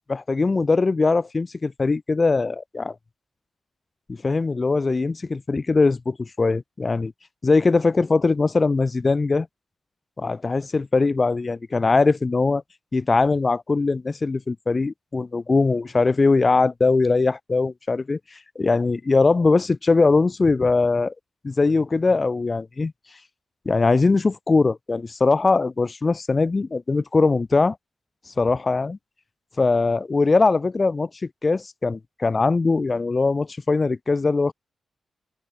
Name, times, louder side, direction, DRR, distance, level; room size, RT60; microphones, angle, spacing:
voice 1, 0.1-2.9 4.1-7.1 7.4-9.5 10.2-12.6 12.9-21.1 21.4-22.9 23.7-27.8 28.3-29.0 29.6-31.1 31.4-34.5, left 3 dB, 35° left, 0.9 m, -21 dB
open air
cardioid pair, 70°, 0 cm